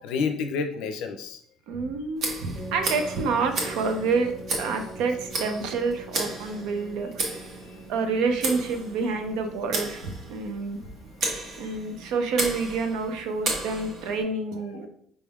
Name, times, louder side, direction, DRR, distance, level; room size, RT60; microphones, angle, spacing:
voice 1, 0.0-1.4 11.3-11.8, left 5 dB, 85° left, 7 dB, 0.5 m, -30 dB
voice 2, 1.7-4.3 4.6-7.3 7.9-10.8 11.6-14.9, right 4 dB, 85° right, 6 dB, 0.6 m, -28 dB
Tick, 2.2-14.2, right 2 dB, 55° right, 1.0 m, -34 dB
sound 1, 2.6-10.0, right 2 dB, 30° right, 1.4 m, -43 dB
5.1 x 3.4 x 2.3 m, 0.64 s
cardioid pair, 140°, 0 cm